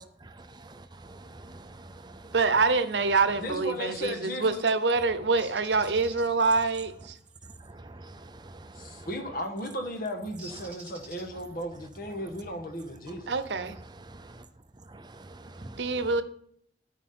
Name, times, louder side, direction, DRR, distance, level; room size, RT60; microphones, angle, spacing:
voice 1, 0.3-1.6 2.2-2.4 7.4-9.1 10.6-10.7 11.3-11.4 12.1-12.3 13.1-14.5 14.7-16.2, right 2 dB, 25° right, 0.6 m, -47 dB
voice 2, 2.3-7.2 13.3-13.8 15.8-16.2, right 4 dB, 85° right, 0.8 m, -25 dB
voice 3, 3.4-4.6 8.8-13.3, equal, 55° left, 1.5 m, -35 dB
Bird, 5.4-6.2 8.9-9.1 10.4-11.6, right 1 dB, 10° right, 2.4 m, -47 dB
13.0 x 4.8 x 4.3 m
head